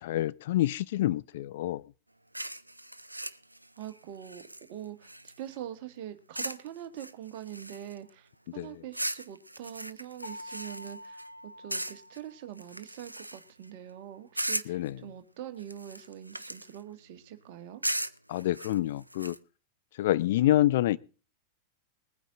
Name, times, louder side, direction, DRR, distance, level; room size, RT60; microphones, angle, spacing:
voice 1, 0.0-1.8 8.6-8.8 14.7-15.0 18.3-19.4 20.0-21.0, left 14 dB, 55° left, 16 dB, 0.6 m, -27 dB
sound 1, 2.3-5.6 6.3-6.7 7.0-8.1 8.9-11.3 11.7-12.2 12.6-13.6 14.3-14.9 15.6-16.8 17.8-19.4, right 1 dB, 85° right, 0.5 m, -37 dB
voice 2, 3.8-4.4 4.7-5.1 5.4-17.8, right 11 dB, 45° right, 9 dB, 1.6 m, -43 dB
sound 2, 10.2-13.0, left 1 dB, 85° left, 2.5 m, -47 dB
20.5 x 9.1 x 3.9 m, 0.35 s
figure-of-eight pair, 90°, 0 cm